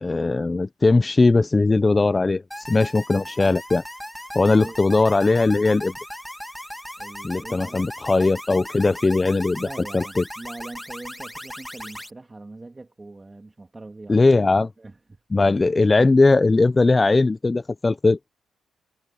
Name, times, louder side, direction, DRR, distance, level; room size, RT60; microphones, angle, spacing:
voice 1, 0.0-3.8 4.3-5.9 7.2-9.7 9.9-10.2 14.1-14.7 15.3-18.2, left 3 dB, 25° left, 0.7 m, -19 dB
sound 1, 2.5-12.1, equal, 5° left, 2.6 m, -37 dB
voice 2, 4.5-4.8 7.0-7.9 9.5-14.2 14.8-15.7, right 2 dB, 25° right, 3.0 m, -42 dB
cardioid pair, 70°, 0 cm